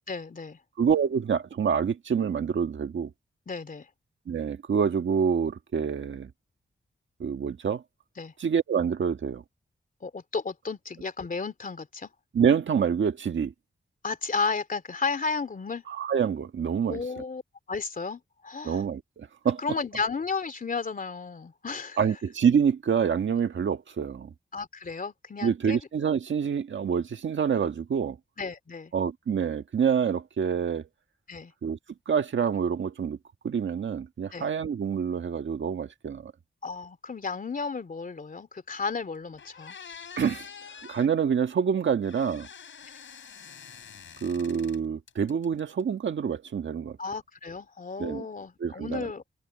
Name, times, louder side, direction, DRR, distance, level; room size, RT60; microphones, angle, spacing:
voice 1, 0.1-0.6 3.5-3.9 8.2-8.3 10.0-12.1 14.0-15.8 16.9-17.4 17.7-18.8 19.6-22.0 24.5-25.8 28.4-28.9 31.3-31.5 34.3-34.5 36.6-39.8 47.0-49.2, left 4 dB, 45° left, 3.0 m, -33 dB
voice 2, 0.8-3.1 4.3-6.3 7.2-7.8 8.4-9.4 12.3-13.5 15.9-17.2 18.6-19.6 22.0-24.3 25.4-28.2 28.9-30.8 31.6-31.8 32.1-33.2 33.4-36.3 40.2-40.5 40.8-42.5 44.2-47.0 48.0-48.2 48.6-49.1, right 7 dB, 85° right, 1.6 m, -27 dB
sound 1, 38.9-39.0 39.4-41.1 42.0-44.8 45.1-45.8, left 7 dB, 90° left, 7.8 m, -46 dB
wide cardioid pair, 115°, 19 cm